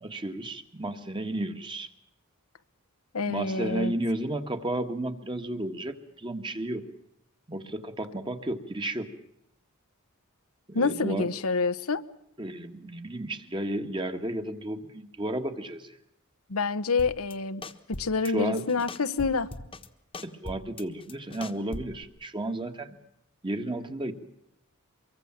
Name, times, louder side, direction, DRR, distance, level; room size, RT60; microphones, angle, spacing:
voice 1, 0.0-1.9 3.3-6.8 7.5-9.1 10.7-11.3 12.4-15.9 18.2-18.6 20.2-23.0 23.4-24.1, right 1 dB, 20° right, 7 dB, 1.6 m, -33 dB
voice 2, 3.1-3.9 10.7-12.0 16.5-17.6 17.9-19.5, left 4 dB, 90° left, 10 dB, 1.1 m, -27 dB
sound 1, 17.0-17.3 17.6-18.3 18.6-19.9 20.1-22.0, left 2 dB, 25° left, 1.3 m, -40 dB
24.5 x 23.5 x 7.4 m, 0.77 s
head